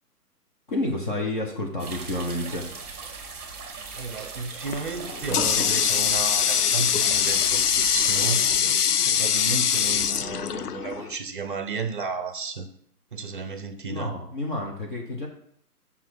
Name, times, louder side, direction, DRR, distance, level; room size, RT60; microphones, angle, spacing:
voice 1, 0.7-2.7 13.9-15.3, left 1 dB, 30° left, 0 dB, 0.9 m, -30 dB
sound 1, 1.8-8.5, right 4 dB, 15° right, 1.1 m, -39 dB
voice 2, 4.0-8.8 9.1-12.7 13.1-14.1, right 5 dB, 35° right, 10 dB, 0.6 m, -33 dB
Water tap faucet, 4.7-11.1, left 8 dB, 70° left, 0.5 m, -23 dB
5.7 x 4.6 x 6.0 m, 0.67 s
figure-of-eight pair, 140°, 47 cm